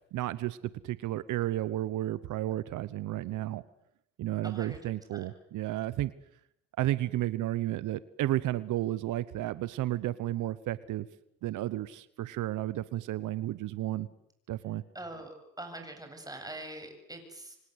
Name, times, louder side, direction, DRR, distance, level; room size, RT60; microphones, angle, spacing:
voice 1, 0.1-0.6 0.8-3.6 4.2-6.1 6.8-11.1 11.4-14.1 14.5-14.8, right 14 dB, 85° right, 16 dB, 1.1 m, -32 dB
voice 2, 4.4-4.8 5.1-5.2 14.9-17.6, right 1 dB, 10° right, 5 dB, 8.0 m, -43 dB
28.0 x 24.5 x 8.1 m, 0.77 s
cardioid pair, 90°, 30 cm